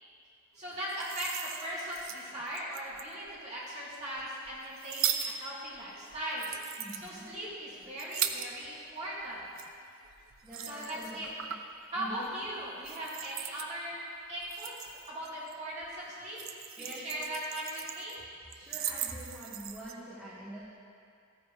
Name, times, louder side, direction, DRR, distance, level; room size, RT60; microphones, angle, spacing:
voice 1, 0.6-6.5 6.9-9.4 10.6-11.3 11.9-13.9 14.3-16.4 16.8-18.2, right 1 dB, 30° right, -8 dB, 2.7 m, -39 dB
sound 1, 0.7-3.3 3.9-8.9 9.2-11.8 12.1-12.4 12.8-13.7 14.3-15.5 15.8-18.2 18.5-19.9, right 10 dB, 60° right, 0.5 m, -39 dB
voice 2, 6.8-7.3 10.4-11.5 11.9-12.3 16.8-17.3 18.5-20.7, right 1 dB, 5° right, -12 dB, 1.4 m, -45 dB
13.5 x 9.6 x 3.4 m, 2.3 s
head